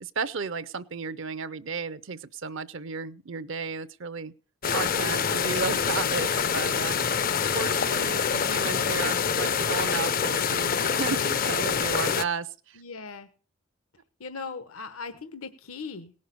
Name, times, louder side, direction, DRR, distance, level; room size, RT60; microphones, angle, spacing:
voice 1, 0.0-4.3 4.7-12.8, right 5 dB, 60° right, 14 dB, 0.6 m, -33 dB
sound 1, 4.6-12.2, left 6 dB, 40° left, 0.5 m, -26 dB
voice 2, 12.8-13.3 14.2-16.1, left 4 dB, 80° left, 11 dB, 1.0 m, -39 dB
18.0 x 6.5 x 6.7 m, 0.39 s
head